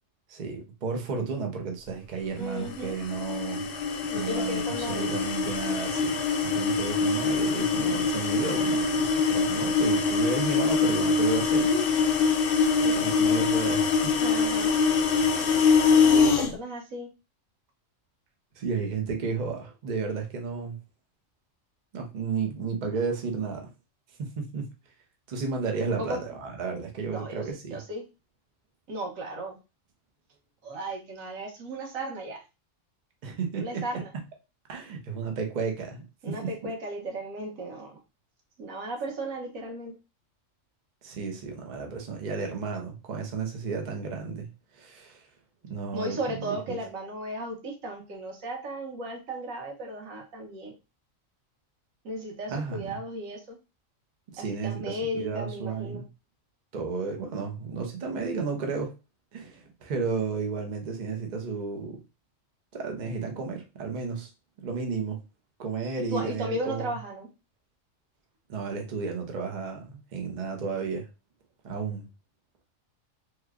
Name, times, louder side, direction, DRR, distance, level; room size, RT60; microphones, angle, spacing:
voice 1, 0.3-3.7 4.1-4.6 4.9-11.9 12.9-14.1 18.6-20.8 21.9-23.7 24.2-24.7 25.3-27.8 33.2-34.0 34.7-36.4 41.0-44.5 44.7-45.3 45.6-46.8 52.5-52.9 54.3-56.1 56.7-58.9 59.3-62.0 62.7-64.3 64.6-65.2 65.6-66.9 68.5-71.1 71.6-72.1, right 5 dB, 40° right, 0.7 m, -33 dB
voice 2, 2.4-3.0 4.1-5.1 12.8-13.0 14.2-14.8 15.7-17.1 26.0-26.2 27.1-28.0 28.9-29.6 30.6-32.4 33.6-34.1 36.2-37.9 38.6-39.9 45.9-50.8 52.0-53.6 54.4-56.0 66.1-67.3, right 1 dB, 90° right, 1.4 m, -35 dB
sound 1, 2.6-16.5, left 5 dB, 65° left, 0.6 m, -24 dB
3.1 x 2.2 x 3.5 m
omnidirectional pair, 1.4 m